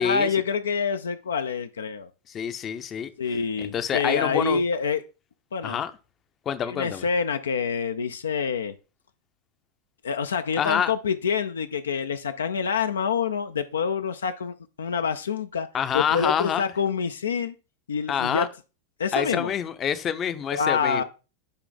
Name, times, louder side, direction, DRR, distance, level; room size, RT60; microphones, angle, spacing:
voice 1, 0.0-2.1 3.2-5.0 5.5-5.8 6.7-8.7 10.0-15.7 15.9-17.5 17.9-18.5 19.0-19.5 20.5-21.0, left 6 dB, 70° left, 0.4 m, -26 dB
voice 2, 2.3-3.1 3.6-4.6 5.6-5.9 6.5-7.1 10.5-10.9 15.7-16.6 18.1-18.5 19.1-21.0, left 8 dB, 25° left, 0.6 m, -26 dB
9.7 x 3.3 x 3.8 m
figure-of-eight pair, 90°, 0 cm